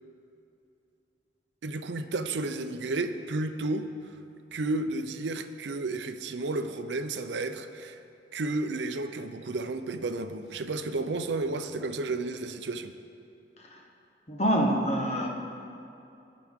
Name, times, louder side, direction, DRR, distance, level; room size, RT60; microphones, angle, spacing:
voice 1, 1.6-4.2 4.5-8.0 8.3-12.9, right 2 dB, 90° right, 9 dB, 0.5 m, -32 dB
voice 2, 14.3-15.3, equal, 35° left, 0 dB, 1.1 m, -25 dB
18.0 x 6.0 x 3.6 m, 2.7 s
head